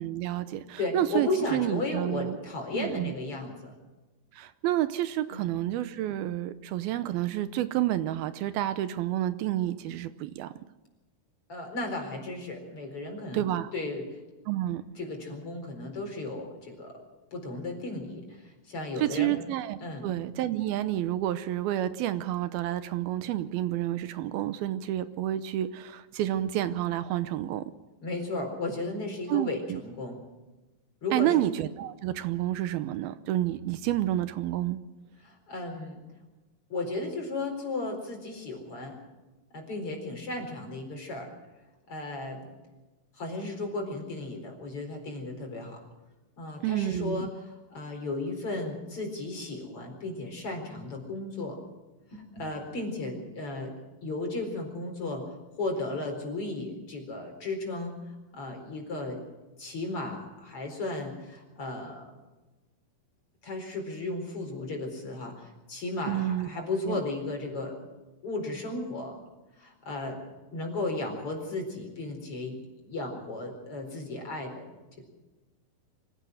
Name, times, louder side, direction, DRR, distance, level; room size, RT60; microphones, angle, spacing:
voice 1, 0.0-2.4 2.7-3.1 4.3-10.5 13.3-13.7 14.5-14.8 19.0-27.7 29.3-29.8 31.1-34.8 46.6-47.3 66.1-67.0, right 13 dB, 80° right, 12 dB, 2.6 m, -29 dB
voice 2, 0.8-3.7 5.3-5.5 11.5-13.4 13.7-14.0 15.0-17.0 17.3-19.3 19.8-20.1 28.0-30.2 31.0-31.5 35.2-36.0 36.7-39.0 39.5-41.3 41.9-42.5 43.2-45.8 46.4-51.6 52.1-53.7 54.0-58.0 58.3-59.2 59.6-62.1 63.4-67.8 68.2-69.2 69.6-70.2 70.5-74.7, left 2 dB, 35° left, 3 dB, 5.0 m, -35 dB
25.0 x 16.5 x 6.4 m, 1.1 s
omnidirectional pair, 4.5 m